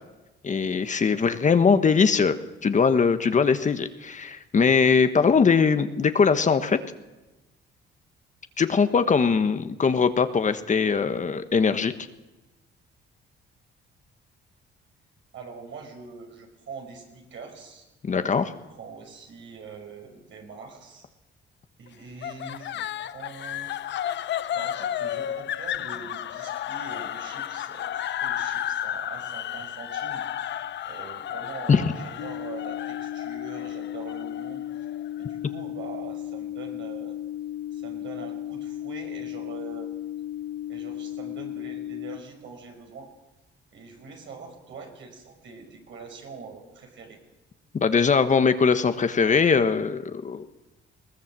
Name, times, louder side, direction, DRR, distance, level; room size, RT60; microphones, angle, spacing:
voice 1, 0.4-2.4 2.6-6.8 8.6-11.9 18.0-18.5 31.7-31.9 47.8-50.5, left 5 dB, 40° left, 10 dB, 1.3 m, -21 dB
voice 2, 15.3-17.8 18.4-21.1 21.8-23.7 24.5-30.2 30.8-34.9 35.2-37.2 37.7-39.9 40.7-43.1 43.7-47.2, right 4 dB, 70° right, 3 dB, 5.5 m, -43 dB
sound 1, 22.2-35.4, left 11 dB, 65° left, 0.7 m, -33 dB
sound 2, 32.2-42.2, left 12 dB, 85° left, 1.5 m, -35 dB
21.0 x 19.0 x 7.5 m, 1.1 s
cardioid pair, 90°, 20 cm